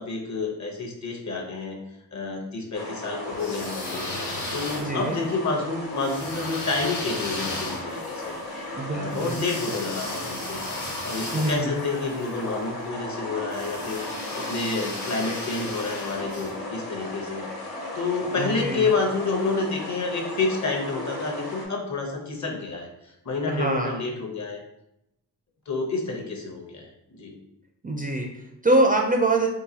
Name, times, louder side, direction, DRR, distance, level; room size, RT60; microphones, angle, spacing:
voice 1, 0.0-1.8 2.1-8.4 8.9-10.6 11.0-24.6 25.7-27.3, left 3 dB, 45° left, 1 dB, 0.8 m, -29 dB
sound 1, 2.7-21.7, left 1 dB, 60° left, 1.2 m, -36 dB
sound 2, 3.3-5.2 6.0-12.3 13.5-16.5, left 2 dB, 90° left, 1.2 m, -36 dB
voice 2, 4.8-5.2 8.8-9.4 11.3-11.8 18.4-18.9 23.5-24.0 27.8-29.5, right 2 dB, 20° right, 1 dB, 0.4 m, -24 dB
3.9 x 2.3 x 2.7 m, 0.83 s
cardioid pair, 65°, 40 cm